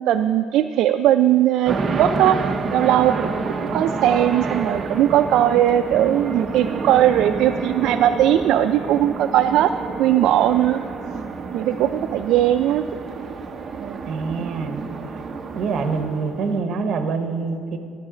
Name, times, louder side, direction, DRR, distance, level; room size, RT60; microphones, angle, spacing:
voice 1, 0.0-2.4 2.7-10.8 11.5-12.8 13.8-14.0 14.4-14.5, right 12 dB, 60° right, 7 dB, 0.3 m, -19 dB
sound 1, 1.7-16.6, right 4 dB, 25° right, 0.7 m, -29 dB
voice 2, 14.1-14.8 15.5-17.8, right 4 dB, 45° right, 7 dB, 1.0 m, -25 dB
13.0 x 10.5 x 5.0 m, 2.3 s
cardioid pair, 170°, 0 cm